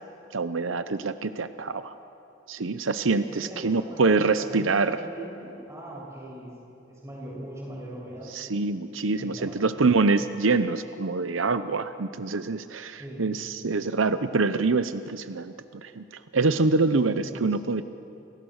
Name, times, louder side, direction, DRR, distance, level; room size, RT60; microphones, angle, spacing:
voice 1, 0.3-1.9 2.5-5.0 8.3-16.0 16.3-17.8, right 3 dB, 85° right, 11 dB, 0.8 m, -25 dB
voice 2, 3.3-6.5 6.9-8.3 9.2-9.6 13.0-13.3 17.1-17.6, right 1 dB, 15° right, -4 dB, 7.8 m, -40 dB
28.5 x 27.5 x 6.5 m, 2.9 s
head